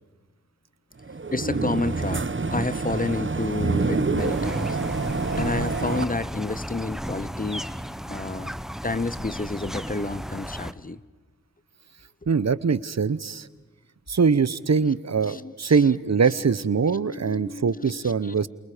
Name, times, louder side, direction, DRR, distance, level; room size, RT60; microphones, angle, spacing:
sound 1, 1.0-6.1, right 3 dB, 40° right, 1.4 m, -27 dB
voice 1, 1.3-4.8 5.3-7.7 8.1-8.5 8.8-11.0 15.2-15.7 16.8-18.3, left 3 dB, 30° left, 0.9 m, -30 dB
sound 2, 4.2-10.7, equal, ahead, 1.3 m, -34 dB
voice 2, 12.3-13.5 14.1-18.5, right 5 dB, 60° right, 1.0 m, -22 dB
28.5 x 28.5 x 5.1 m
cardioid pair, 45°, 30 cm